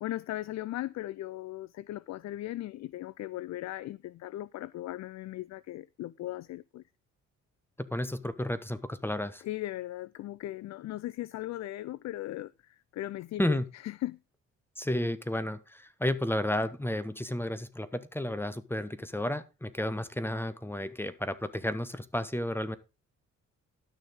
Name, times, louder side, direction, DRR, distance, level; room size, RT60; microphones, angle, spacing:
voice 1, 0.0-6.8 9.4-13.6 13.8-14.2, left 15 dB, 65° left, 0.5 m, -38 dB
voice 2, 7.8-9.4 13.4-13.7 14.8-22.8, left 1 dB, 5° left, 1.2 m, -32 dB
12.0 x 6.5 x 5.2 m
cardioid pair, 90°, 30 cm